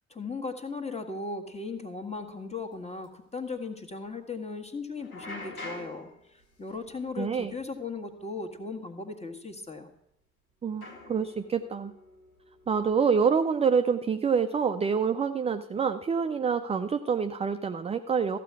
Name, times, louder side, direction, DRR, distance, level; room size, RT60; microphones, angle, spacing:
voice 1, 0.1-9.9, left 4 dB, 15° left, 4 dB, 1.6 m, -37 dB
sound 1, 1.5-1.6 2.1-2.3 2.6-2.7 3.0-3.1 5.0-8.0 8.2-8.6 9.5-9.6 10.8-13.2, left 2 dB, 90° left, 1.1 m, -46 dB
voice 2, 7.2-7.5 10.6-11.9 12.7-18.4, right 6 dB, 15° right, 9 dB, 0.4 m, -27 dB
14.0 x 7.5 x 4.7 m, 0.80 s
figure-of-eight pair, 45°, 42 cm